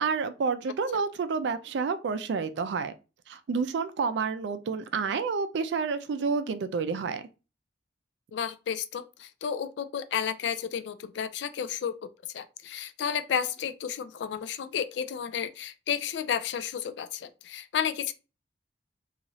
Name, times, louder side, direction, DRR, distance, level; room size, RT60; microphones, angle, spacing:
voice 1, 0.0-2.9 3.3-7.3, right 5 dB, 75° right, 0.3 m, -29 dB
voice 2, 8.3-11.9 12.3-18.1, left 8 dB, 75° left, 0.3 m, -32 dB
3.0 x 2.4 x 2.6 m
head